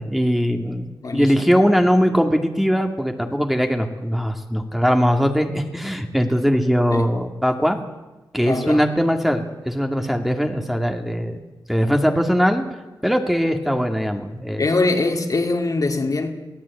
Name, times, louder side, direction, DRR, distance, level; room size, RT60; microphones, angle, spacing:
voice 1, 0.0-7.8 8.3-11.4 11.7-12.7 13.0-14.6, equal, 5° right, 2.4 m, -20 dB
voice 2, 8.5-8.8 14.6-16.3, left 3 dB, 50° left, 2.8 m, -22 dB
23.0 x 16.5 x 8.6 m
cardioid pair, 70°, 8 cm